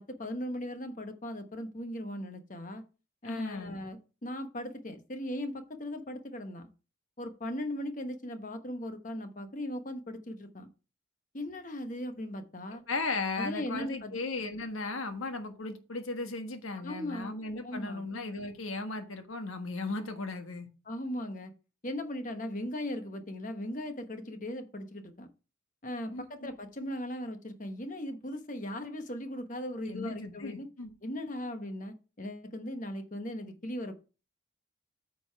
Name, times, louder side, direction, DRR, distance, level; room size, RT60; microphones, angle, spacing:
voice 1, 0.0-2.8 3.2-6.7 7.2-10.7 11.3-12.8 13.4-14.1 16.8-17.4 17.6-18.1 20.9-21.5 21.8-25.3 25.8-30.7 31.0-34.0, left 1 dB, 40° left, 7 dB, 1.1 m, -38 dB
voice 2, 3.2-3.8 12.9-20.7 26.1-26.5 29.8-30.9, left 3 dB, 80° left, 6 dB, 1.4 m, -36 dB
9.1 x 5.4 x 4.6 m, 0.33 s
head